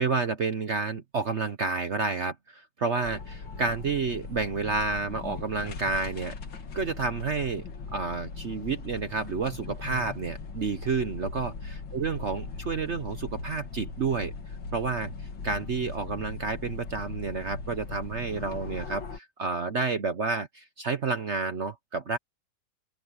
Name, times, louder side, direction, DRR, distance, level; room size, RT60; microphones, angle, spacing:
voice 1, 0.0-6.3 6.7-14.3 14.7-15.1 15.4-22.2, right 4 dB, 50° right, 1.0 m, -30 dB
sound 1, 3.0-19.2, left 4 dB, 85° left, 2.7 m, -39 dB
open air
omnidirectional pair, 2.0 m